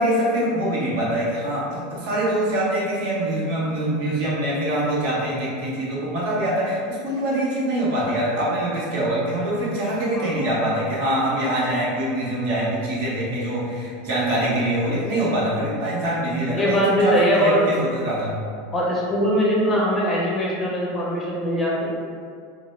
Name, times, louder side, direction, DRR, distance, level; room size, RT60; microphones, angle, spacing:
voice 1, 0.0-18.4, right 1 dB, 65° right, -6 dB, 0.7 m, -24 dB
voice 2, 16.5-17.7 18.7-21.8, equal, 25° left, -5 dB, 0.7 m, -21 dB
2.1 x 2.0 x 3.1 m, 2.1 s
hypercardioid pair, 85°, 0 cm